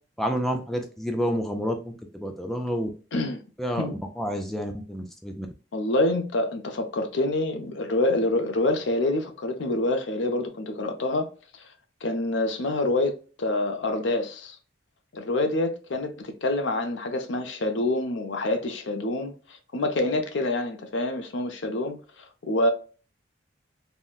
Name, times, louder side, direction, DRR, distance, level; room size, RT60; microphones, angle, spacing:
voice 1, 0.2-2.9 3.6-3.9 4.2-5.5, equal, ahead, 0.3 m, -29 dB
voice 2, 3.1-3.4 3.8-3.9 5.7-11.3 11.5-11.7 12.0-14.6 15.1-22.7, left 2 dB, 70° left, 0.5 m, -27 dB
3.6 x 2.1 x 2.3 m
head